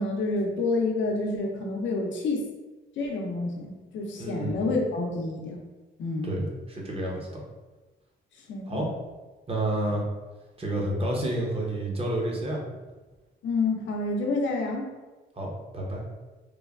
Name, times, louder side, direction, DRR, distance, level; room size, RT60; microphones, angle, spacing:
voice 1, 0.0-2.4 3.0-5.6 6.0-6.3 8.5-8.8 13.4-14.9, left 3 dB, 70° left, 1 dB, 0.6 m, -28 dB
voice 2, 4.2-4.6 6.2-7.4 8.7-8.9 9.5-10.0 10.6-12.6 15.4-16.0, right 1 dB, 30° right, -2 dB, 0.8 m, -29 dB
3.1 x 2.2 x 2.4 m, 1.2 s
cardioid pair, 90°, 20 cm